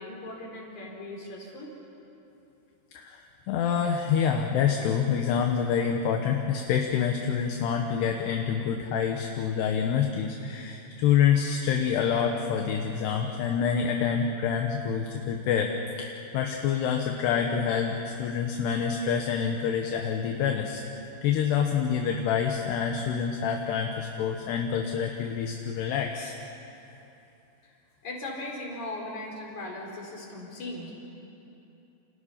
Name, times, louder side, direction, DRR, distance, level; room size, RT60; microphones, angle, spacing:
voice 1, 0.0-1.7 27.6-27.8 28.0-30.9, left 2 dB, 40° left, -1 dB, 5.2 m, -38 dB
voice 2, 2.9-20.8 21.2-26.3, left 7 dB, 70° left, 3 dB, 2.9 m, -27 dB
29.5 x 28.5 x 5.8 m, 2.9 s
omnidirectional pair, 5.7 m